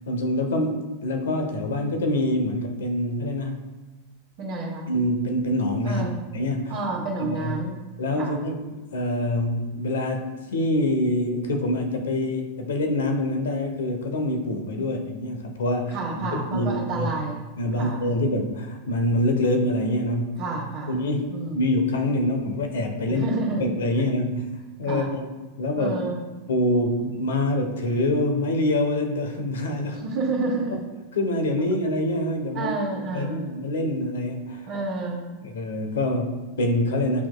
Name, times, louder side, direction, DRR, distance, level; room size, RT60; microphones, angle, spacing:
voice 1, 0.1-3.6 4.9-6.1 6.3-6.8 7.2-7.7 8.0-17.1 17.6-20.4 20.9-23.3 23.6-26.0 26.5-30.0 30.7-30.8 31.1-32.8 33.1-34.7 35.4-37.3, left 1 dB, 85° left, 5 dB, 0.8 m, -25 dB
voice 2, 4.4-4.9 5.8-6.2 6.7-8.4 14.8-14.9 15.9-17.4 17.8-18.1 20.4-21.0 21.3-21.6 23.1-23.6 24.9-25.1 25.8-26.2 30.0-30.8 32.5-33.5 34.7-35.3, right 3 dB, 45° right, -6 dB, 1.2 m, -29 dB
8.1 x 2.9 x 2.2 m, 1.2 s
hypercardioid pair, 115°, 0 cm